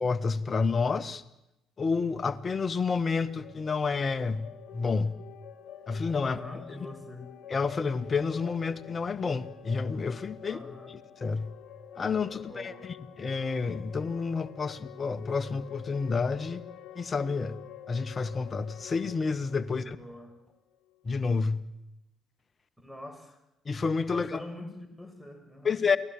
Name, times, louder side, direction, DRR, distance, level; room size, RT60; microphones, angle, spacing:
voice 1, 0.0-1.2 1.8-4.4 4.7-5.1 5.9-6.4 7.5-10.6 11.2-11.5 12.0-12.7 13.2-16.6 17.0-17.5 17.9-20.0 21.0-21.6 23.7-24.4 25.7-26.0, left 4 dB, 35° left, 1.7 m, -29 dB
sound 1, 3.2-21.0, left 10 dB, 60° left, 2.0 m, -48 dB
voice 2, 6.2-7.3 10.4-11.0 12.3-12.9 19.7-20.4 22.8-23.4 24.1-25.8, left 1 dB, ahead, 7.1 m, -44 dB
29.0 x 19.5 x 7.9 m
figure-of-eight pair, 50°, 0 cm